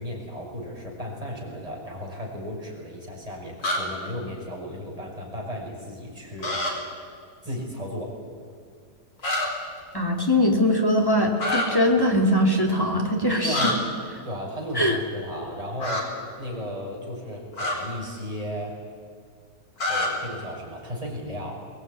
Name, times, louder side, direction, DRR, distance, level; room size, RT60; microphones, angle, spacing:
voice 1, 0.0-6.6 7.4-8.1 13.4-13.8 14.2-16.1 16.4-18.7 19.8-21.6, equal, 20° right, -2 dB, 6.6 m, -34 dB
sound 1, 3.6-3.8 6.4-6.7 9.2-9.5 11.4-11.7 13.5-13.7 15.8-16.0 17.5-17.8 19.8-20.1, left 1 dB, 55° left, 4.8 m, -25 dB
voice 2, 9.9-13.6 14.7-15.0, left 1 dB, 10° left, 1 dB, 3.1 m, -21 dB
24.0 x 20.0 x 9.8 m, 2.1 s
omnidirectional pair, 1.9 m